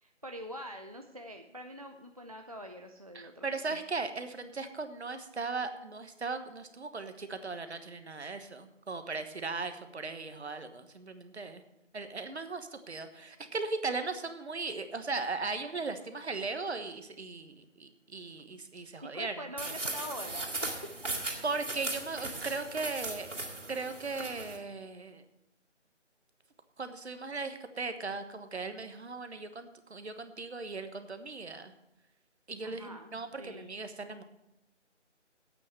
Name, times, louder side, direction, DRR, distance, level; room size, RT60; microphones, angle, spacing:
voice 1, 0.0-3.8 19.1-20.8 32.6-33.7, equal, 30° right, 4 dB, 0.5 m, -44 dB
voice 2, 3.1-11.6 11.9-19.3 19.6-19.7 21.4-23.4 23.7-25.2 26.8-31.7 32.5-34.2, right 3 dB, 60° right, 9 dB, 1.3 m, -38 dB
sound 1, 19.6-24.6, right 2 dB, 80° right, 3.0 m, -38 dB
8.7 x 8.6 x 7.5 m, 0.87 s
figure-of-eight pair, 165°, 36 cm